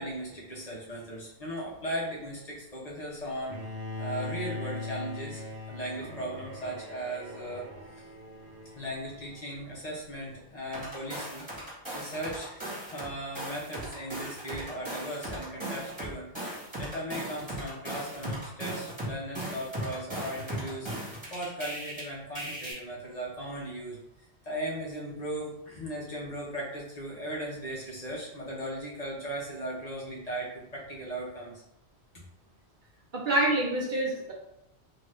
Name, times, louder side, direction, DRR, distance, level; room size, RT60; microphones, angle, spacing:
voice 1, 0.0-7.7 8.7-11.5 11.9-24.0 24.4-31.5, right 1 dB, 40° left, -5 dB, 0.8 m, -37 dB
Bowed string instrument, 3.5-9.6, left 2 dB, 80° right, 1.1 m, -40 dB
sound 1, 10.7-13.1 13.3-22.0 22.3-22.7, right 1 dB, 25° right, 1.4 m, -37 dB
voice 2, 33.1-34.3, right 1 dB, 55° right, -2 dB, 0.7 m, -26 dB
2.7 x 2.6 x 3.3 m, 0.81 s
omnidirectional pair, 1.1 m